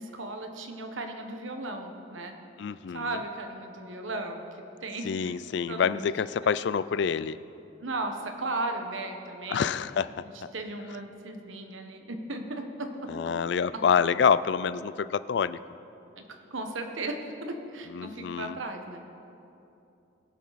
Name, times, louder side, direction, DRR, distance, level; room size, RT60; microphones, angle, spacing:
voice 1, 0.0-2.4 2.9-4.4 4.8-5.3 5.7-6.1 7.8-9.7 10.5-13.1 13.7-13.8 16.2-16.3 16.5-19.0, right 2 dB, 80° right, 4 dB, 1.2 m, -36 dB
voice 2, 2.6-3.1 5.1-7.4 9.5-10.1 13.1-15.6 17.9-18.6, left 6 dB, 60° left, 16 dB, 0.3 m, -27 dB
21.0 x 7.6 x 4.1 m, 2.8 s
head